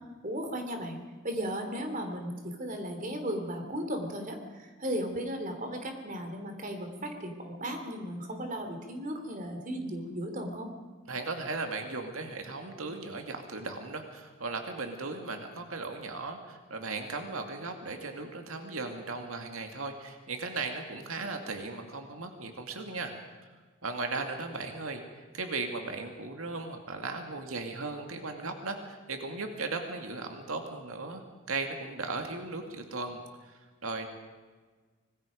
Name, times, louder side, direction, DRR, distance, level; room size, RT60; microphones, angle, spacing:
voice 1, 0.2-10.7, equal, 40° right, 5 dB, 3.2 m, -36 dB
voice 2, 11.1-23.2 23.8-31.2 31.5-34.1, right 3 dB, 90° right, 4 dB, 2.2 m, -37 dB
25.5 x 20.0 x 5.2 m, 1.4 s
head